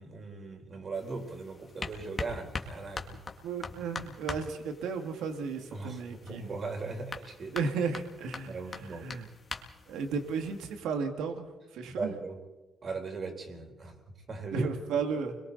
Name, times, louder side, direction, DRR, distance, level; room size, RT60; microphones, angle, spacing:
voice 1, 0.0-3.2 5.7-7.6 8.5-9.1 11.9-12.4 12.8-13.9 14.3-14.7, right 3 dB, 45° right, 3 dB, 4.2 m, -39 dB
sound 1, 0.9-10.8, left 4 dB, 35° left, 2.1 m, -43 dB
voice 2, 3.4-6.5 7.5-9.3 9.9-12.1 14.5-15.4, right 5 dB, 90° right, 6 dB, 1.9 m, -34 dB
29.5 x 22.5 x 4.1 m, 1.2 s
cardioid pair, 90°, 0 cm